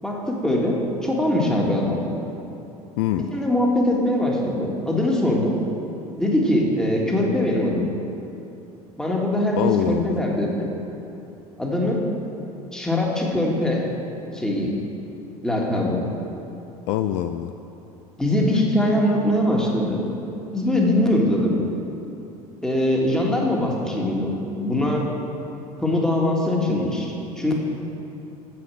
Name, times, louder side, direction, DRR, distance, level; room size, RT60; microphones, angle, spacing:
voice 1, 0.0-2.0 3.3-5.6 6.2-7.9 9.0-10.7 11.6-12.1 12.7-13.8 14.3-14.7 15.4-16.0 18.2-20.0 20.5-21.7 22.6-25.1 25.8-27.6, left 1 dB, 5° left, -2 dB, 1.9 m, -22 dB
voice 2, 9.6-10.2 16.9-17.5, left 12 dB, 55° left, 8 dB, 0.4 m, -24 dB
9.0 x 7.7 x 6.2 m, 2.8 s
figure-of-eight pair, 70°, 19 cm